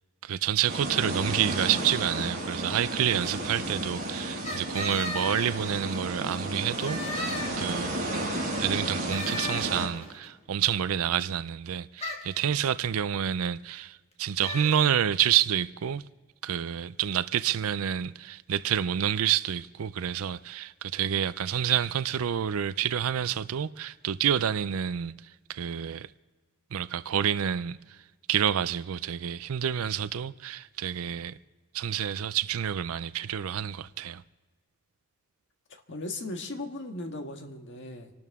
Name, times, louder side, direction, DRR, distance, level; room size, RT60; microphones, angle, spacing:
voice 1, 0.2-7.3 7.6-8.0 8.6-16.0 16.4-25.1 25.5-26.1 26.7-28.0 28.3-31.4 31.7-34.2, right 9 dB, 70° right, 0.4 m, -28 dB
sound 1, 0.7-9.9, right 1 dB, 40° right, 5.0 m, -33 dB
sound 2, 4.4-6.1 6.6-8.0 9.1-10.1 12.0-12.4 14.4-14.9, left 3 dB, 30° left, 1.8 m, -36 dB
voice 2, 35.7-38.1, left 2 dB, 55° left, 1.6 m, -37 dB
27.0 x 12.5 x 3.6 m
head